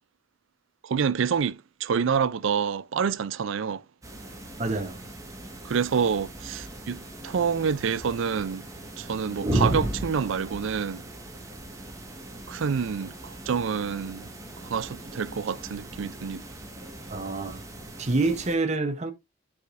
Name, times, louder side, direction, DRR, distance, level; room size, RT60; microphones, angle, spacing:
voice 1, 0.8-3.8 5.6-8.6 9.0-11.0 12.5-14.3 14.6-16.4, right 6 dB, 65° right, 0.4 m, -27 dB
sound 1, 4.0-18.5, right 1 dB, 15° right, 1.3 m, -36 dB
voice 2, 4.6-5.0 17.1-17.6 18.0-19.1, right 3 dB, 35° right, 0.8 m, -27 dB
9.4 x 4.9 x 2.5 m
head